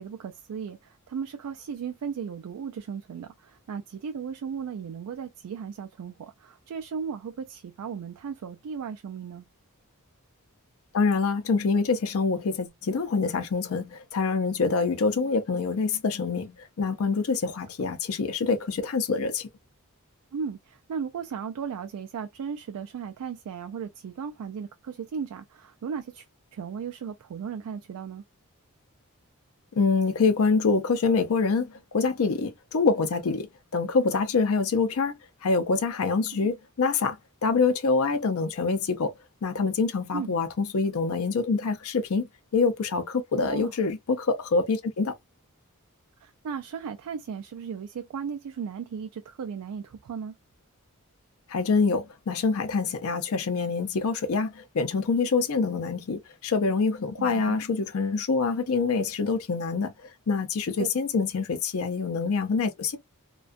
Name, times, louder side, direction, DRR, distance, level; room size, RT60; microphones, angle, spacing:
voice 1, 0.0-9.5 20.3-26.3 26.5-28.2 36.3-36.5 40.1-40.3 43.5-43.7 46.2-50.3 57.2-57.6 60.8-60.9, right 6 dB, 85° right, 0.3 m, -36 dB
voice 2, 10.9-19.5 29.8-33.5 33.7-35.1 35.4-39.1 39.4-42.3 42.5-45.1 51.5-59.9 60.3-63.0, left 4 dB, 70° left, 0.5 m, -25 dB
2.5 x 2.2 x 2.3 m
head